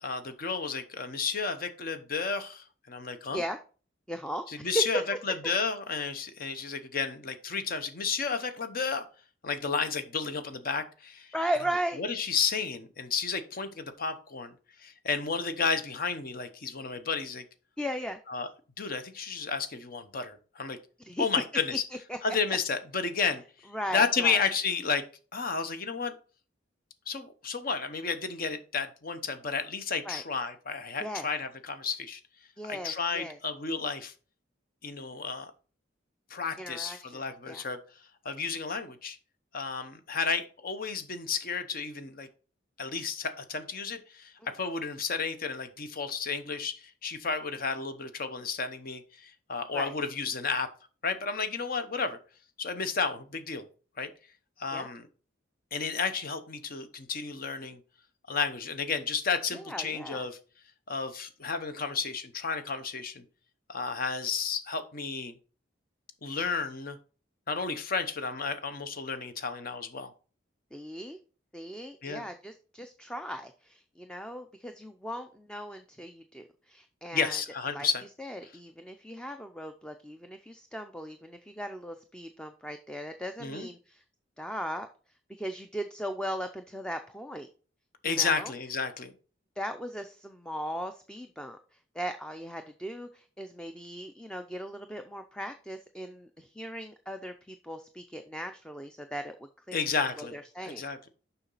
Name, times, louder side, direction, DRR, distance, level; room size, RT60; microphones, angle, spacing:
voice 1, 0.0-3.4 4.5-9.0 9.4-11.3 12.0-14.5 14.8-17.4 18.3-18.5 18.8-20.8 21.2-21.8 22.2-23.4 23.9-25.0 25.3-26.1 27.1-32.2 32.6-34.1 34.8-35.5 36.3-37.8 38.2-39.2 39.5-42.3 42.8-50.7 51.0-52.2 52.6-53.7 54.0-54.1 54.6-55.0 55.7-57.8 58.3-60.4 60.9-63.2 63.7-65.4 66.2-67.0 67.5-70.1 72.0-72.2 77.1-78.0 83.4-83.7 88.0-89.1 99.7-100.3 100.7-101.0, left 5 dB, 50° left, 9 dB, 0.9 m, -32 dB
voice 2, 4.1-4.8 11.3-12.0 17.8-18.2 21.0-21.3 22.1-22.2 23.7-24.4 30.0-30.2 31.0-31.3 32.6-33.4 36.6-37.2 37.5-37.7 44.4-44.5 49.7-49.9 54.7-54.9 59.5-60.3 70.7-71.2 71.5-77.4 77.7-77.9 78.2-84.0 84.4-84.9 85.4-87.5 88.0-88.5 89.6-99.8 100.2-100.8, equal, 5° left, 7 dB, 0.4 m, -37 dB
7.0 x 5.8 x 3.9 m, 0.37 s
head